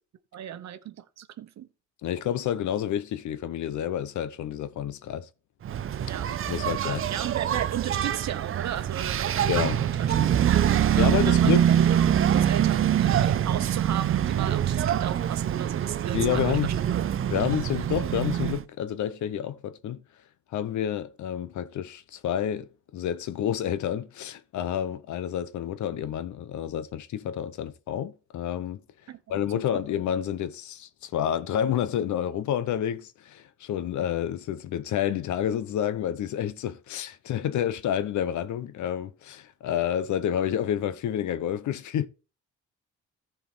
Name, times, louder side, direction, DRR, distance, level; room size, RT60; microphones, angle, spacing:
voice 1, 0.3-1.7 6.0-6.3 6.8-10.1 10.5-17.5 29.1-29.2 29.6-29.8, right 11 dB, 65° right, 1.1 m, -35 dB
voice 2, 2.0-5.3 6.5-7.0 9.4-9.8 10.5-11.7 16.1-16.7 17.3-20.0 20.5-28.8 29.3-42.1, left 10 dB, 75° left, 0.9 m, -29 dB
Engine, 5.7-18.6, right 10 dB, 45° right, 0.6 m, -24 dB
14.0 x 4.7 x 4.5 m
cardioid pair, 90°, 30 cm